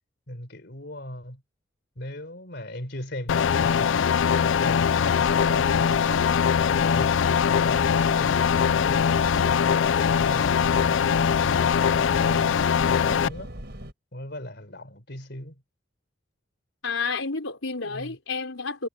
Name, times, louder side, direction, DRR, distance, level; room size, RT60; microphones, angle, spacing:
voice 1, 0.3-1.4 2.0-5.9 11.2-13.5 14.1-15.6 17.8-18.2, left 1 dB, 55° left, 4.1 m, -39 dB
sound 1, 3.3-13.3, left 7 dB, 70° left, 0.4 m, -22 dB
sound 2, 5.2-13.9, right 1 dB, 55° right, 4.9 m, -40 dB
voice 2, 16.8-18.9, left 4 dB, 90° left, 4.6 m, -30 dB
head